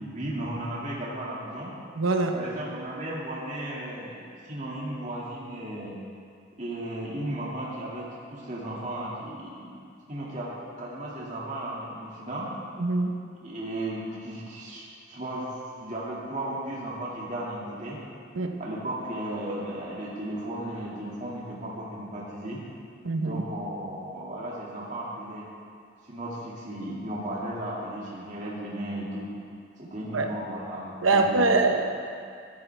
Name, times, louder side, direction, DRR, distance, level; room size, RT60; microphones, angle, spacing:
voice 1, 0.0-1.7 2.3-5.9 6.6-9.8 10.1-12.5 13.4-15.5 15.8-18.0 18.6-22.6 23.2-25.5 26.1-29.3 29.8-31.4, right 1 dB, 35° right, -6 dB, 2.3 m, -35 dB
voice 2, 2.0-2.4 12.8-13.2 18.4-18.6 23.0-23.4 30.1-30.3 31.0-31.9, right 3 dB, 90° right, 4 dB, 1.0 m, -23 dB
14.5 x 12.5 x 3.5 m, 2.3 s
head